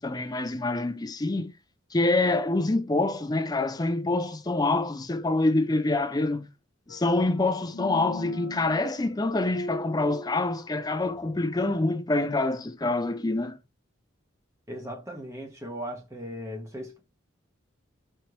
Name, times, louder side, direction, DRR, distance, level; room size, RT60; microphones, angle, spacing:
voice 1, 0.0-1.5 1.9-6.5 6.9-13.6, left 2 dB, 20° left, 0.5 m, -26 dB
sound 1, 6.9-11.9, left 2 dB, 85° left, 0.7 m, -41 dB
voice 2, 14.7-17.0, equal, 15° right, 1.1 m, -37 dB
4.3 x 3.3 x 3.0 m
head